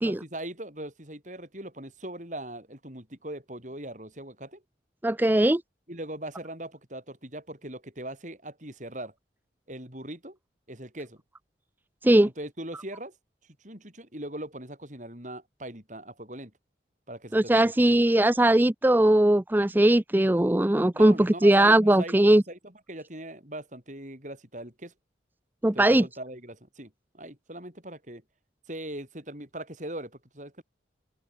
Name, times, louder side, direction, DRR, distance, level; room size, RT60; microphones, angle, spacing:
voice 1, 0.0-4.6 5.9-9.1 9.7-10.4 10.7-11.2 12.2-13.1 13.6-16.5 17.1-18.0 20.9-24.9 25.7-28.2 28.7-30.6, right 1 dB, 40° right, 7.8 m, -40 dB
voice 2, 5.0-5.6 12.0-12.3 17.3-22.4 25.6-26.0, right 1 dB, 10° right, 0.4 m, -20 dB
open air
head